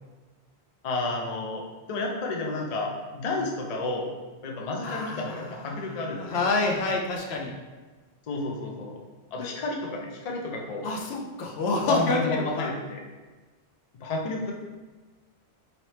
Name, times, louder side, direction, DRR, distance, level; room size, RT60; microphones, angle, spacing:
voice 1, 0.8-1.6 1.9-4.1 4.4-6.5 8.3-9.0 9.3-10.9 11.8-13.0 13.9-14.5, left 2 dB, 45° left, 0 dB, 0.6 m, -31 dB
voice 2, 4.8-7.5 9.4-9.5 10.8-12.7, left 3 dB, 80° left, 0 dB, 0.9 m, -28 dB
4.1 x 2.8 x 3.2 m, 1.3 s
omnidirectional pair, 1.1 m